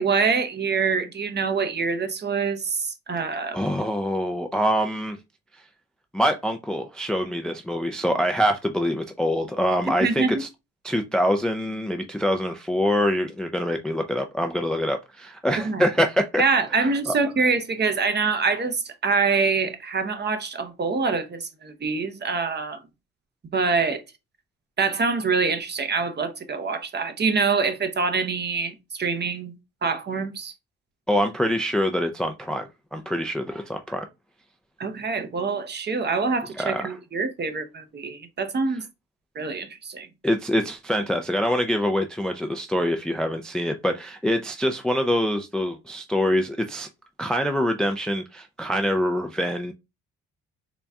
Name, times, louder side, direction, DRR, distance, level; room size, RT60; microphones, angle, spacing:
voice 1, 0.0-3.6 10.0-10.3 15.6-15.8 16.4-22.8 23.5-24.0 24.8-30.5 34.8-38.8 39.4-40.1, right 4 dB, 35° right, 0.7 m, -25 dB
voice 2, 3.5-5.2 6.1-10.5 10.8-16.4 16.8-17.1 31.1-34.1 36.6-37.0 40.2-46.9 47.2-49.7, equal, 5° left, 0.3 m, -25 dB
4.0 x 2.3 x 3.4 m
cardioid pair, 90°, 30 cm